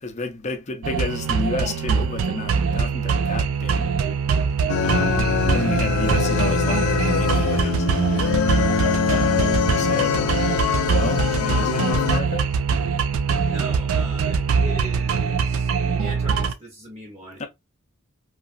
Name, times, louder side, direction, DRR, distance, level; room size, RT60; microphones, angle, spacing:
voice 1, 0.0-3.9 4.8-7.9 9.1-10.4 10.9-12.5 17.4-17.5, left 2 dB, 35° left, 0.5 m, -31 dB
sound 1, 0.8-16.5, right 5 dB, 90° right, 0.4 m, -23 dB
sound 2, 4.7-12.2, left 8 dB, 90° left, 0.3 m, -23 dB
voice 2, 13.4-15.7 16.0-17.5, right 1 dB, 30° right, 0.9 m, -39 dB
2.9 x 2.5 x 2.4 m
head